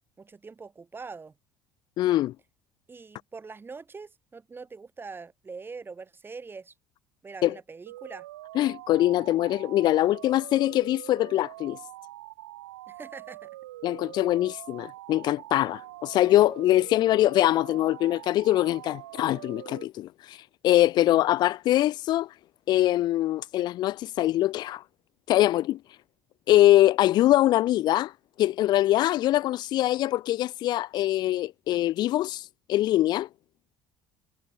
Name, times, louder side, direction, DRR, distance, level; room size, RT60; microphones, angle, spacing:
voice 1, 0.2-1.3 2.9-6.7 7.2-8.3 12.9-13.5, right 4 dB, 25° right, 7.1 m, -43 dB
voice 2, 2.0-2.3 7.4-7.5 8.5-11.8 13.8-20.4 20.6-22.3 22.7-24.8 25.3-25.8 26.5-28.1 28.4-33.3, left 14 dB, 60° left, 0.8 m, -23 dB
sound 1, 7.9-19.8, right 16 dB, 90° right, 5.2 m, -44 dB
hypercardioid pair, 75°, 8 cm